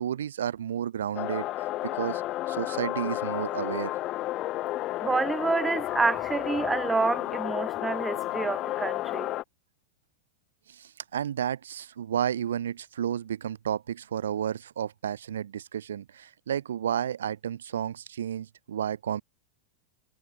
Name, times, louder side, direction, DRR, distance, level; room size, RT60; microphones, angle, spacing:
voice 1, 0.0-2.2 2.5-3.9 5.5-5.6 10.7-19.2, right 9 dB, 65° right, 1.6 m, -32 dB
sound 1, 1.2-9.4, left 16 dB, 35° left, 0.5 m, -32 dB
voice 2, 5.0-9.3, right 4 dB, 10° right, 1.8 m, -28 dB
figure-of-eight pair, 90°, 0 cm